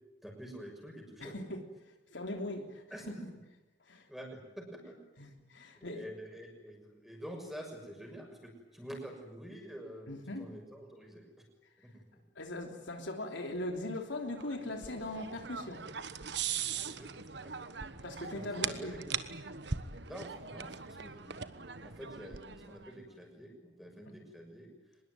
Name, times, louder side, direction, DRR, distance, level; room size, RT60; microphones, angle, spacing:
voice 1, 0.2-1.3 2.9-3.4 4.1-5.0 5.8-11.3 11.8-12.2 16.7-17.1 17.4-17.6 18.3-19.0 20.0-24.8, equal, ahead, 2 dB, 6.4 m, -48 dB
voice 2, 1.2-1.6 2.1-2.8 3.9-4.1 5.2-6.0 10.1-10.4 12.4-15.8 18.0-19.0, left 1 dB, 75° left, 4 dB, 3.3 m, -40 dB
sound 1, 14.4-22.9, right 7 dB, 65° right, 1.3 m, -40 dB
24.5 x 21.0 x 9.5 m, 1.1 s
head